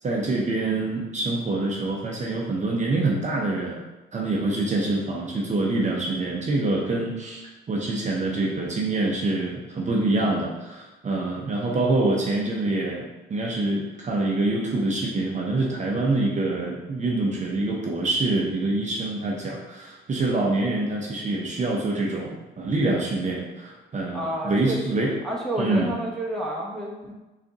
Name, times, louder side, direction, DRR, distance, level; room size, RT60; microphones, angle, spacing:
voice 1, 0.0-3.8 4.1-25.1 25.6-25.9, right 2 dB, 35° right, -2 dB, 0.6 m, -25 dB
voice 2, 24.1-27.1, right 1 dB, ahead, -5 dB, 0.9 m, -30 dB
3.4 x 2.5 x 3.9 m, 1.1 s
cardioid pair, 90°, 20 cm